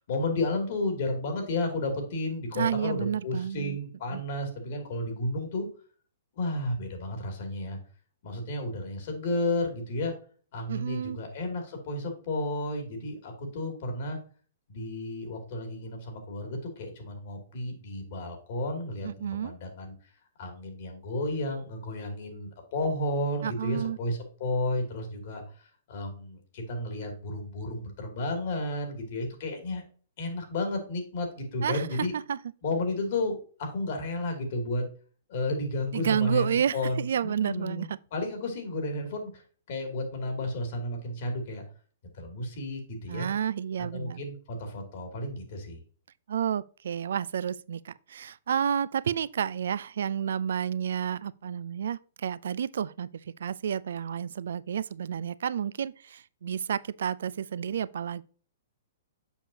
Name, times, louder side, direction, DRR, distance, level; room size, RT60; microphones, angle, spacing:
voice 1, 0.0-5.7 6.4-7.8 8.2-10.1 10.5-14.2 14.7-19.9 20.4-29.8 30.2-32.1 32.6-34.8 35.3-39.4 39.7-41.6 42.1-43.3 43.9-45.8, left 2 dB, 60° left, 2.6 m, -32 dB
voice 2, 2.5-3.8 4.1-4.2 10.7-11.2 19.0-19.5 23.4-24.0 31.6-31.8 32.3-32.4 35.9-38.0 43.1-44.2 46.3-53.1 53.4-58.2, right 8 dB, 75° right, 0.3 m, -30 dB
7.1 x 5.6 x 2.8 m
hypercardioid pair, 135°, 0 cm